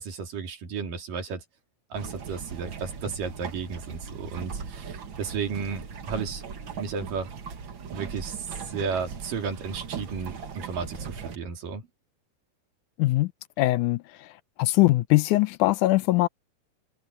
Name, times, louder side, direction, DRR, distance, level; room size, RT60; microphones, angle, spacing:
voice 1, 0.0-1.4 1.9-6.4 6.8-7.3 7.9-11.8, right 5 dB, 90° right, 4.7 m, -33 dB
sound 1, 1.9-11.4, right 6 dB, 45° right, 1.9 m, -39 dB
voice 2, 13.0-13.3 13.6-14.3 14.6-16.3, left 18 dB, 80° left, 2.0 m, -22 dB
omnidirectional pair, 3.7 m